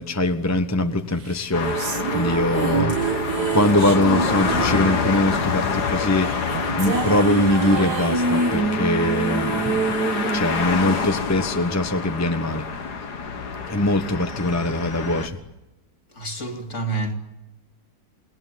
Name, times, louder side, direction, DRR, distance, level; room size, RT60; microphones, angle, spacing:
voice 1, 0.0-1.8 2.1-3.2 3.5-10.0 10.3-12.6 13.7-15.4, left 1 dB, 10° left, 1.0 m, -22 dB
sound 1, 1.3-11.7, right 5 dB, 75° right, 1.9 m, -26 dB
sound 2, 1.5-15.3, left 5 dB, 70° left, 2.4 m, -27 dB
voice 2, 16.1-17.1, right 3 dB, 45° left, 3.0 m, -28 dB
28.5 x 20.0 x 9.3 m
omnidirectional pair, 1.8 m